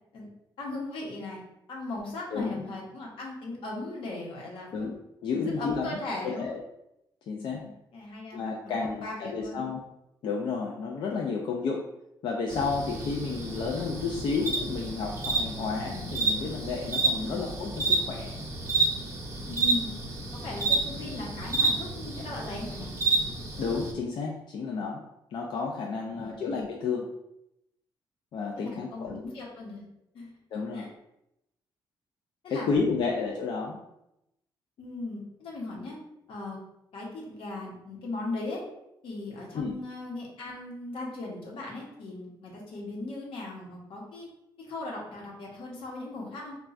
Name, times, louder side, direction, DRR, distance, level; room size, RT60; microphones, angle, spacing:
voice 1, 0.6-1.4 1.7-4.9 5.3-6.5 7.3-8.4 8.8-9.6 17.2-17.4 19.5-19.9 20.3-22.9 26.1-26.5 28.5-29.8 30.1-30.3 30.7-30.9 32.4-33.1 34.8-36.0 36.3-36.6 36.9-38.6 39.0-44.3 44.6-46.6, left 2 dB, 80° left, -2 dB, 0.9 m, -38 dB
voice 2, 2.3-2.6 4.7-6.0 6.2-6.6 7.3-7.7 8.3-9.8 10.2-11.9 12.2-18.4 23.6-25.0 25.3-27.1 28.3-29.2 30.5-30.9 32.5-33.8 39.5-39.8, left 4 dB, 60° left, -1 dB, 0.3 m, -31 dB
sound 1, 12.5-23.9, right 3 dB, 35° right, 0.6 m, -30 dB
4.0 x 2.3 x 2.4 m, 0.85 s
cardioid pair, 145°, 9 cm